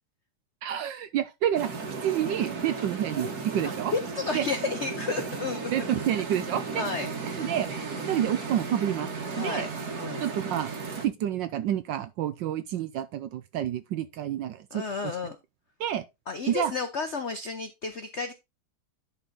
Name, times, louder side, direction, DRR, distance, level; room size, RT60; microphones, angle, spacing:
voice 1, 0.6-1.7 2.0-3.9 4.3-4.4 5.7-6.8 7.4-7.7 8.1-9.1 9.4-9.7 10.2-10.7 11.0-14.8 15.8-16.0 16.5-16.7, right 11 dB, 70° right, 1.2 m, -28 dB
sound 1, 1.5-11.1, right 4 dB, 45° right, 1.9 m, -35 dB
voice 2, 3.6-5.9 6.6-7.5 7.9-8.2 9.3-9.7 10.0-10.3 14.7-15.4 16.3-18.3, left 4 dB, 85° left, 0.6 m, -32 dB
11.0 x 4.1 x 3.9 m
omnidirectional pair, 2.4 m